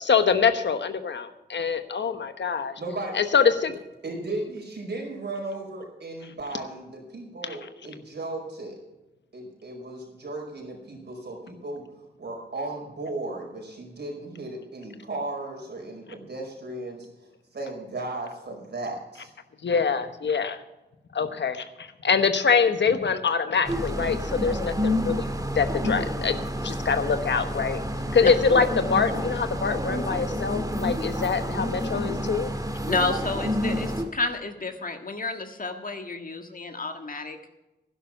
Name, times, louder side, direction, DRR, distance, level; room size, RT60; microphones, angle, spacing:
voice 1, 0.0-2.7 3.1-3.7 7.4-7.6 19.6-20.6 21.1-25.3 25.6-26.4 26.6-27.8 28.1-32.5, left 5 dB, 85° left, 9 dB, 1.1 m, -24 dB
voice 2, 2.8-3.2 4.0-8.8 9.3-11.8 12.2-17.1 17.5-19.3, right 2 dB, 70° right, 0 dB, 5.1 m, -35 dB
sound 1, 23.6-34.0, equal, 20° right, 2.0 m, -29 dB
voice 3, 32.9-37.4, left 3 dB, 50° left, 5 dB, 1.7 m, -30 dB
12.0 x 11.0 x 5.8 m, 0.99 s
wide cardioid pair, 80°, 18 cm